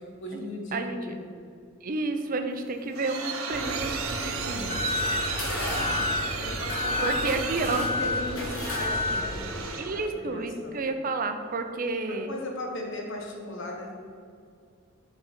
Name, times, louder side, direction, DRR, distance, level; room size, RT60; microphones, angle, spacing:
voice 1, 0.2-1.2 5.4-6.0 6.4-9.4 9.9-10.8 12.1-13.9, left 2 dB, 65° left, 1 dB, 1.2 m, -37 dB
voice 2, 0.7-1.2 1.8-4.9 7.0-7.9 9.8-12.3, right 3 dB, 40° right, 7 dB, 0.4 m, -31 dB
sound 1, 2.6-10.1, right 5 dB, 85° right, 0.7 m, -34 dB
sound 2, 3.5-9.8, left 1 dB, 90° left, 1.1 m, -35 dB
Alarm, 4.7-5.2 5.7-6.2 6.7-7.2 7.7-8.2 8.7-9.2, left 3 dB, 40° left, 0.7 m, -29 dB
5.8 x 3.8 x 6.0 m, 2.2 s
head